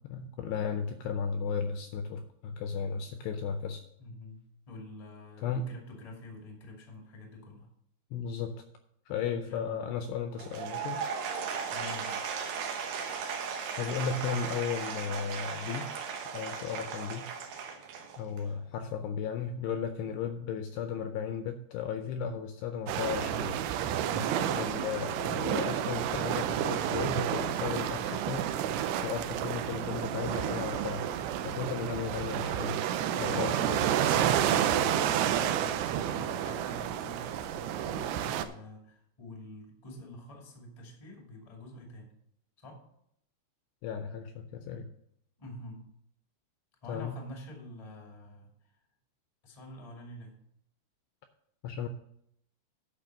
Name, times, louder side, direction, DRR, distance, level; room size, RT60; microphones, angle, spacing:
voice 1, 0.1-3.8 5.4-5.7 8.1-8.5 9.1-11.0 13.8-15.9 16.3-17.5 18.2-23.5 24.5-28.5 29.0-31.1 31.4-32.8 33.2-33.8 43.8-44.9 46.9-47.2 51.6-51.9, left 7 dB, 80° left, 7 dB, 2.5 m, -35 dB
voice 2, 4.0-4.4 4.7-7.7 9.4-9.9 11.7-12.2 24.1-24.7 31.6-31.9 33.3-33.8 34.1-42.1 42.6-42.8 45.4-45.8 46.8-48.5 49.4-50.3, left 2 dB, 35° left, 0 dB, 0.6 m, -46 dB
Applause / Crowd, 10.3-18.5, right 6 dB, 70° right, 2.3 m, -37 dB
sound 1, 22.9-38.4, right 10 dB, 85° right, 2.4 m, -30 dB
10.5 x 5.8 x 6.3 m, 0.73 s
omnidirectional pair, 5.5 m